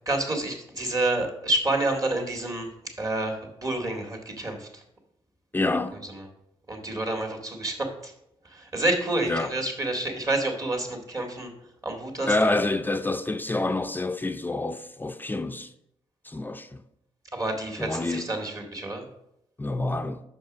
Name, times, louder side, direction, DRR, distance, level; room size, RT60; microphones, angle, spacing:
voice 1, 0.1-2.7 3.0-4.8 6.7-8.1 8.4-11.5 11.8-12.3 17.3-19.1, right 2 dB, 35° right, 2.0 m, -28 dB
voice 2, 5.5-6.1 9.3-9.5 12.2-15.7 16.2-16.8 17.8-18.3 19.6-20.2, left 2 dB, 20° left, 0.5 m, -27 dB
6.2 x 5.1 x 6.1 m
cardioid pair, 80°, 11 cm